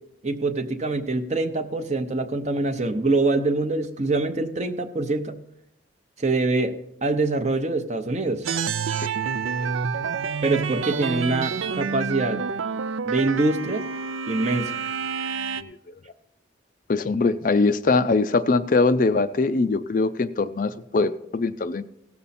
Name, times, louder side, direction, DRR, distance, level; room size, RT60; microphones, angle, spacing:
voice 1, 0.2-5.4 6.2-6.7 7.0-8.5 10.4-12.4 13.0-13.8 14.3-14.8, right 2 dB, 35° right, 8 dB, 0.7 m, -24 dB
sound 1, 8.4-15.6, right 6 dB, 80° right, 0.5 m, -28 dB
voice 2, 16.9-21.8, left 3 dB, 40° left, 11 dB, 0.4 m, -22 dB
17.0 x 7.0 x 4.2 m, 0.79 s
head